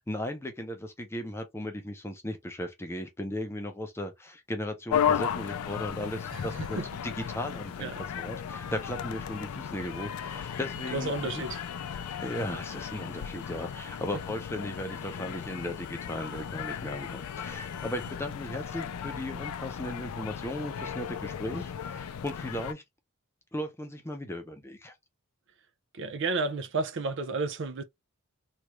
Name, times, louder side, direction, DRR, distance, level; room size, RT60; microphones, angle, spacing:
voice 1, 0.1-11.5 12.2-22.8 23.5-24.9, left 1 dB, 10° left, 0.5 m, -36 dB
sound 1, 4.9-22.7, left 8 dB, 80° left, 0.4 m, -35 dB
voice 2, 6.3-6.9 7.8-8.0 10.9-11.6 25.9-27.8, right 3 dB, 55° right, 0.5 m, -32 dB
Bowed string instrument, 10.3-18.2, left 9 dB, 55° left, 0.9 m, -51 dB
3.0 x 2.4 x 3.0 m
head